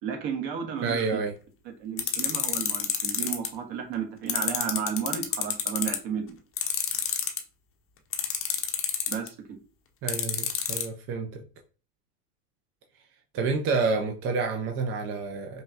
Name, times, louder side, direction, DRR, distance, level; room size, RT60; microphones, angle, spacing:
voice 1, 0.0-1.0 1.8-6.4 9.1-9.3, right 7 dB, 55° right, 3 dB, 1.4 m, -33 dB
voice 2, 0.8-1.3 10.0-11.4 13.3-15.6, right 4 dB, 30° right, 2 dB, 0.4 m, -29 dB
sound 1, 2.0-3.5 4.3-6.0 6.6-7.4 8.1-9.3 10.1-10.8, left 9 dB, 30° left, 0.7 m, -27 dB
5.3 x 2.3 x 2.7 m, 0.37 s
supercardioid pair, 115°, 47 cm